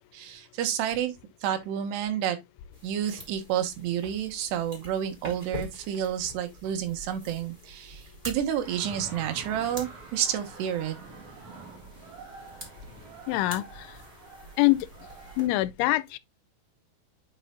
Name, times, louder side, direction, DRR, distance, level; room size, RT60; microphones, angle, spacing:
voice 1, 0.1-1.1 1.4-2.4 2.8-11.0, right 10 dB, 70° right, 3.1 m, -30 dB
sound 1, 2.7-15.5, left 1 dB, 25° right, 1.1 m, -46 dB
sound 2, 8.6-15.5, right 3 dB, 45° right, 3.2 m, -46 dB
voice 2, 13.3-13.9 14.6-14.9 15.4-16.2, left 19 dB, 85° left, 2.9 m, -24 dB
9.8 x 5.6 x 2.4 m
omnidirectional pair, 5.5 m